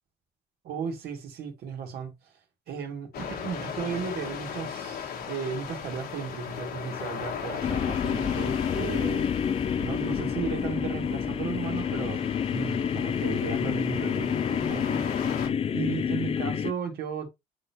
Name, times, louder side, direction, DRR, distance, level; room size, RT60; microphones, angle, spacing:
voice 1, 0.6-2.3 2.7-9.3 9.5-12.2 12.5-15.3 15.7-17.3, right 6 dB, 70° right, 2.2 m, -35 dB
sound 1, 3.1-15.5, left 7 dB, 65° left, 1.6 m, -37 dB
sound 2, 7.6-16.7, left 7 dB, 35° left, 0.5 m, -28 dB
10.5 x 3.8 x 2.9 m
cardioid pair, 110°, 17 cm